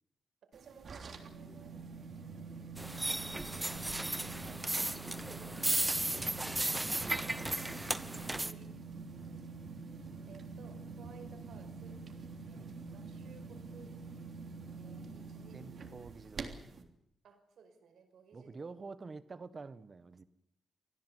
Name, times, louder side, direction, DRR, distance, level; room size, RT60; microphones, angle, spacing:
voice 1, 0.4-1.8 3.0-4.2 5.0-5.9 8.1-8.7 9.3-9.4 9.9-12.0 12.5-13.9 14.8-15.6 17.2-18.6, right 6 dB, 80° right, 7 dB, 5.3 m, -58 dB
sound 1, 0.5-16.8, right 4 dB, 55° right, 3.3 m, -46 dB
sound 2, 2.8-8.5, right 1 dB, 10° right, 1.1 m, -35 dB
voice 2, 6.0-6.8 7.2-7.7 9.2-9.5 12.5-12.8 15.5-17.0 18.3-20.2, right 4 dB, 35° right, 13 dB, 1.5 m, -50 dB
26.0 x 17.0 x 8.4 m, 0.78 s
wide cardioid pair, 120°, 0 cm